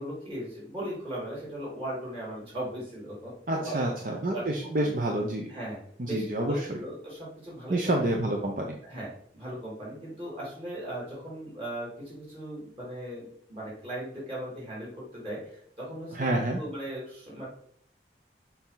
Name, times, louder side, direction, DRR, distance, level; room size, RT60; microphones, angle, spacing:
voice 1, 0.0-3.9 4.3-4.4 4.8-4.9 5.5-7.9 8.8-9.1 9.3-17.5, right 1 dB, 30° right, -7 dB, 2.7 m, -38 dB
voice 2, 3.5-5.5 6.0-6.8 7.7-8.7 16.1-16.6, right 1 dB, 50° right, 1 dB, 0.7 m, -28 dB
6.8 x 4.2 x 4.0 m, 0.63 s
head